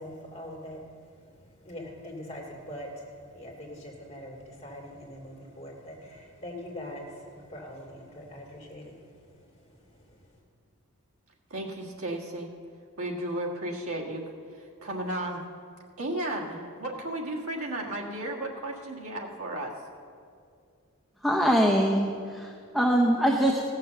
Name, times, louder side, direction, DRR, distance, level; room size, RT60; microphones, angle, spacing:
voice 1, 0.0-10.3, left 1 dB, 30° left, -2 dB, 2.6 m, -43 dB
voice 2, 11.5-12.5 13.0-14.2 14.5-15.4 16.0-19.7, right 1 dB, 65° right, -2 dB, 1.6 m, -34 dB
voice 3, 21.2-23.6, equal, ahead, -1 dB, 0.8 m, -23 dB
16.5 x 6.5 x 6.8 m, 2.3 s
head